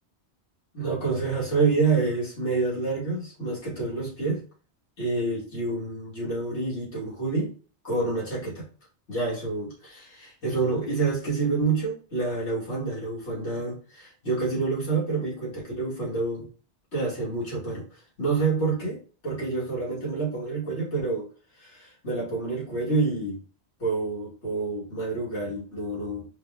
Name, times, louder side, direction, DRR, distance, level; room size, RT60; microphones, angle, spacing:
voice 1, 0.7-4.4 5.0-7.5 7.8-8.6 9.1-16.5 16.9-17.8 18.2-21.3 21.6-23.4 23.8-26.3, right 3 dB, 75° left, -5 dB, 2.3 m, -28 dB
4.9 x 2.3 x 3.4 m, 0.38 s
omnidirectional pair, 1.2 m